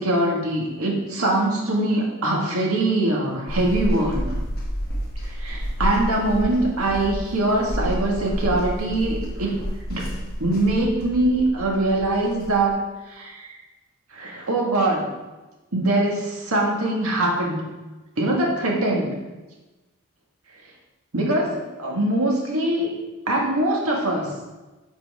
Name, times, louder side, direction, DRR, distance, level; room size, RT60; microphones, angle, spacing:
voice 1, 0.0-4.3 5.3-9.6 9.9-10.1 10.4-12.8 13.1-13.5 14.1-15.1 15.7-17.6 18.2-19.1 21.1-22.9 23.3-24.4, right 1 dB, 85° right, -1 dB, 1.8 m, -23 dB
sound 1, 3.5-12.7, equal, 45° left, 1.4 m, -30 dB
9.7 x 4.4 x 3.7 m, 1.1 s
head